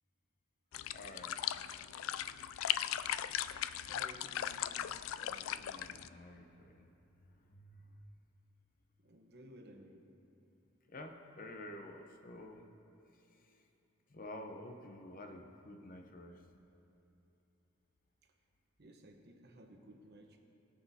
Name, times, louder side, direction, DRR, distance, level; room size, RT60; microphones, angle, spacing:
sound 1, 0.7-6.1, left 11 dB, 70° left, 0.3 m, -38 dB
voice 1, 0.9-1.3 5.2-6.5 10.9-11.1 11.4-12.6 14.2-16.3, left 1 dB, 45° left, 4 dB, 0.8 m, -49 dB
voice 2, 3.8-4.9 9.0-10.0 18.8-20.4, right 1 dB, 55° right, 3 dB, 1.0 m, -56 dB
21.0 x 8.0 x 2.8 m, 2.9 s
head